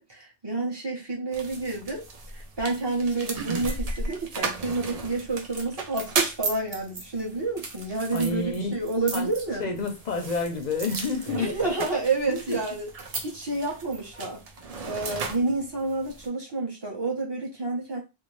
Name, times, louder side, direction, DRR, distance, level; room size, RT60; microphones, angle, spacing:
voice 1, 0.0-2.0 2.3-9.7 11.3-12.9 13.2-14.4 14.8-18.0, right 3 dB, 25° right, 0.8 m, -29 dB
sound 1, 1.3-16.3, right 3 dB, 50° right, 0.5 m, -35 dB
voice 2, 8.1-8.7 9.1-9.3 9.6-11.6 12.3-12.6, left 3 dB, 55° left, 0.6 m, -29 dB
2.6 x 2.1 x 3.1 m
omnidirectional pair, 1.0 m